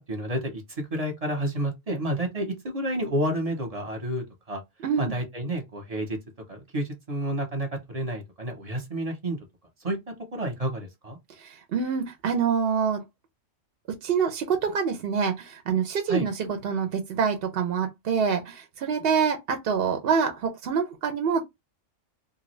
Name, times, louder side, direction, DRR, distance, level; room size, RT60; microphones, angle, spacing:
voice 1, 0.1-4.6 5.0-6.2 6.5-9.4 9.8-10.0 10.3-11.2 16.1-16.3, right 1 dB, 30° right, 0.9 m, -30 dB
voice 2, 4.8-5.2 11.4-13.0 14.0-21.4, right 6 dB, 60° right, 0.7 m, -26 dB
2.6 x 2.5 x 3.1 m
omnidirectional pair, 1.3 m